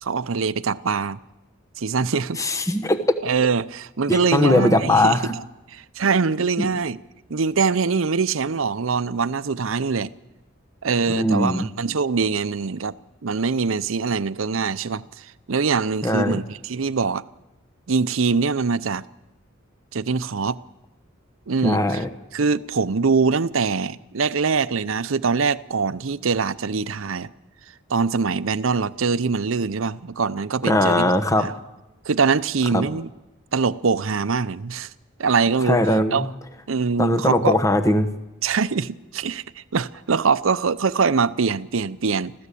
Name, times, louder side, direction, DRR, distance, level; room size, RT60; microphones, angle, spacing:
voice 1, 0.0-1.2 1.8-2.4 3.2-5.4 5.7-7.0 7.3-10.1 10.8-12.9 13.2-17.2 17.9-19.0 19.9-20.6 21.5-22.0 22.3-27.3 27.9-31.5 32.1-33.1 33.5-34.9 35.2-35.8 36.1-36.3 36.7-37.6 38.4-42.3, right 5 dB, 70° right, 0.7 m, -23 dB
voice 2, 2.4-3.0 4.1-5.3 11.1-11.7 16.0-16.3 21.6-22.1 30.6-31.5 32.7-32.9 35.7-36.3 37.0-38.1, left 1 dB, 15° left, 1.2 m, -20 dB
26.0 x 15.0 x 8.4 m
head